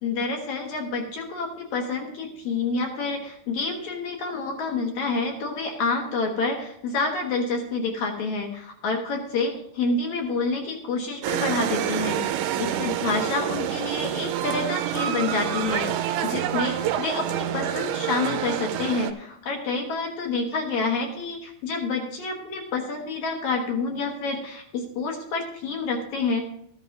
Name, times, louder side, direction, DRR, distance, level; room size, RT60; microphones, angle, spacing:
voice 1, 0.0-26.4, left 4 dB, 65° left, 2 dB, 2.1 m, -28 dB
sound 1, 11.2-19.1, right 11 dB, 90° right, 2.7 m, -27 dB
14.5 x 11.0 x 2.6 m, 0.70 s
omnidirectional pair, 4.5 m